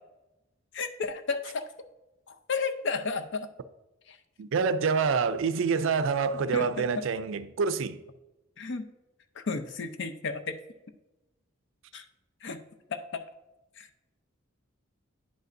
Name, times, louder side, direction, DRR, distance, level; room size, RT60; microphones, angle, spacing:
voice 1, 0.7-1.7 2.3-3.5 4.1-4.2 6.5-7.0 8.6-8.9 9.4-10.6 11.9-12.0 12.4-12.6 12.9-13.2 13.8-13.9, left 4 dB, 60° left, 0.6 m, -33 dB
voice 2, 4.4-8.0, right 5 dB, 65° right, 0.4 m, -27 dB
10.0 x 5.3 x 2.6 m
head